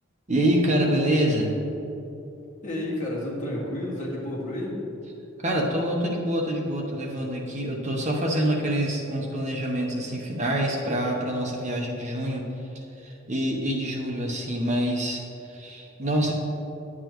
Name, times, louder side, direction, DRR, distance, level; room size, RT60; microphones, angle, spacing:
voice 1, 0.3-1.5 5.4-16.3, right 1 dB, 35° right, -1 dB, 0.9 m, -26 dB
voice 2, 2.6-4.8, left 1 dB, 40° left, -5 dB, 2.0 m, -31 dB
10.5 x 8.5 x 3.1 m, 3.0 s
head